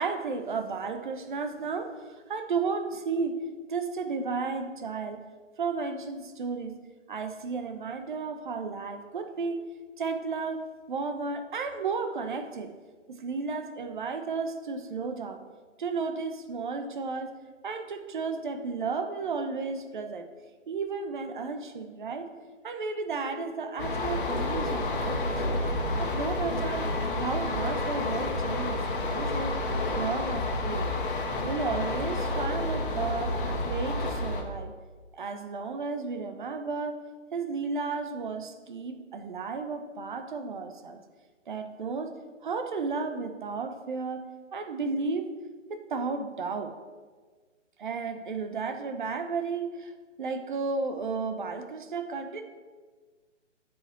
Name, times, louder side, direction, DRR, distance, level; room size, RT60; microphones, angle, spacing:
voice 1, 0.0-3.4 3.7-5.2 5.6-6.8 7.1-9.6 10.0-12.7 13.1-15.4 15.8-17.3 17.6-20.3 20.7-22.3 22.6-25.6 26.0-26.8 27.1-29.6 30.0-30.9 31.4-33.3 33.6-34.7 35.1-37.0 37.3-41.0 41.5-42.1 42.4-44.2 44.5-45.3 45.7-46.7 47.8-49.9 50.2-52.4, right 4 dB, 40° right, 7 dB, 0.9 m, -33 dB
sound 1, 23.8-34.4, left 2 dB, 45° left, 1.6 m, -30 dB
9.0 x 5.2 x 7.2 m, 1.4 s
figure-of-eight pair, 145°, 37 cm